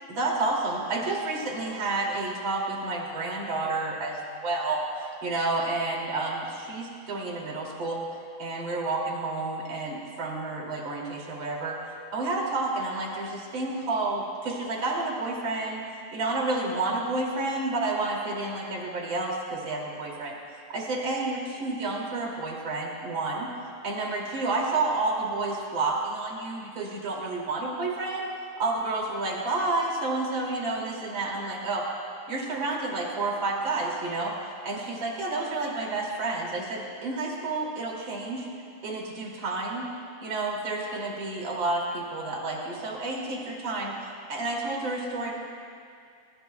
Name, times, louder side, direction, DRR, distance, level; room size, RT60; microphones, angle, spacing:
voice 1, 0.1-8.0 8.4-11.8 12.1-20.4 20.7-23.5 23.8-28.3 28.6-31.8 32.3-34.3 34.6-38.5 38.8-39.9 40.2-43.9 44.3-45.3, right 2 dB, 35° right, -3 dB, 3.0 m, -30 dB
29.5 x 17.0 x 2.3 m, 2.4 s
omnidirectional pair, 4.1 m